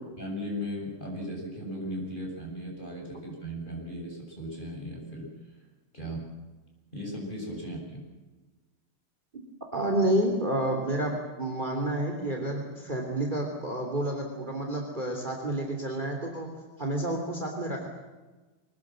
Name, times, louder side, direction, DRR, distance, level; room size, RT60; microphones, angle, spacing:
voice 1, 0.2-5.3 5.9-6.3 6.9-8.0, equal, 20° left, -1 dB, 7.9 m, -37 dB
voice 2, 9.7-16.5 16.8-17.9, right 1 dB, 20° right, 2 dB, 3.2 m, -29 dB
24.5 x 19.5 x 7.7 m, 1.2 s
omnidirectional pair, 2.3 m